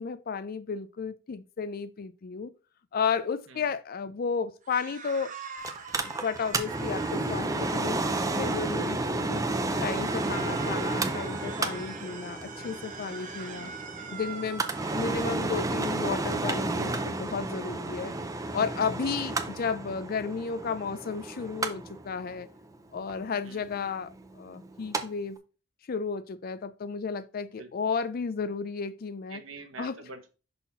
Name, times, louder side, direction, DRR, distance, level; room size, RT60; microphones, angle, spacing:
voice 1, 0.0-2.5 2.9-5.3 6.2-8.0 8.4-9.4 9.8-13.7 14.1-14.6 14.9-18.1 18.5-22.5 22.9-25.4 25.9-29.4 29.8-30.0, left 5 dB, 50° left, 0.4 m, -33 dB
sound 1, 4.6-9.1 9.6-15.4, right 5 dB, 40° right, 1.0 m, -43 dB
Mechanical fan, 5.6-25.0 25.4-25.5, right 2 dB, 15° right, 0.5 m, -32 dB
sound 2, 7.1-10.4, left 7 dB, 15° left, 1.8 m, -47 dB
voice 2, 13.4-13.8 14.8-15.0 18.1-18.3 19.2-19.3 23.4-23.6 27.6-27.7 29.3-30.3, right 4 dB, 80° right, 1.0 m, -47 dB
5.7 x 4.2 x 4.0 m
head